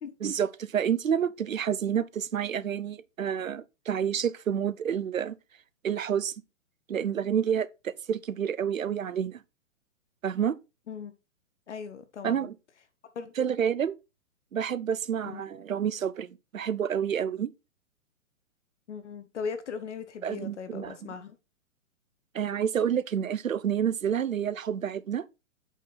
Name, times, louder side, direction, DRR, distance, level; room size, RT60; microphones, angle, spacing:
voice 1, 0.2-5.4 5.8-6.3 6.9-9.4 10.2-10.6 12.2-12.5 13.4-14.0 14.5-17.5 20.2-20.9 22.3-25.3, right 8 dB, 80° right, 0.7 m, -29 dB
voice 2, 11.7-12.5 13.1-13.3 15.2-15.4 18.9-21.4, left 6 dB, 60° left, 1.2 m, -38 dB
8.2 x 4.4 x 4.0 m
figure-of-eight pair, 125°, 40 cm